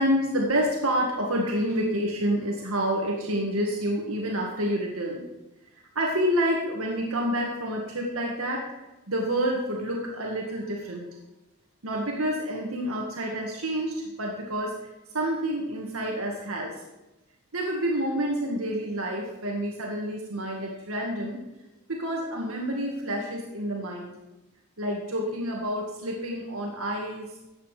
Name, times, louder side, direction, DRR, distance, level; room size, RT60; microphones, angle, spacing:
voice 1, 0.0-5.2 6.0-8.7 9.1-11.1 11.8-16.7 17.5-21.4 21.9-24.1 24.8-27.3, equal, 70° right, -1 dB, 2.0 m, -28 dB
14.0 x 8.6 x 5.1 m, 0.98 s
head